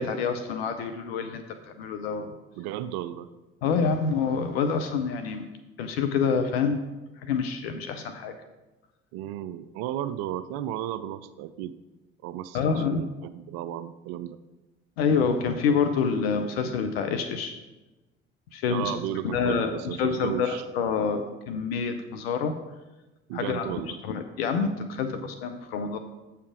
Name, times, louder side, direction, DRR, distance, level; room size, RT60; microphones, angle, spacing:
voice 1, 0.0-1.4 1.8-2.3 3.6-5.4 5.8-6.8 7.2-8.3 12.5-13.0 15.0-17.6 18.5-18.9 19.2-22.5 23.3-23.7 24.0-26.0, left 5 dB, 75° left, 7 dB, 0.6 m, -27 dB
voice 2, 2.6-3.3 9.1-11.8 12.2-14.4 18.7-20.6 23.3-24.0, right 12 dB, 65° right, 13 dB, 0.5 m, -34 dB
8.1 x 5.6 x 4.9 m, 1.1 s
hypercardioid pair, 55°, 30 cm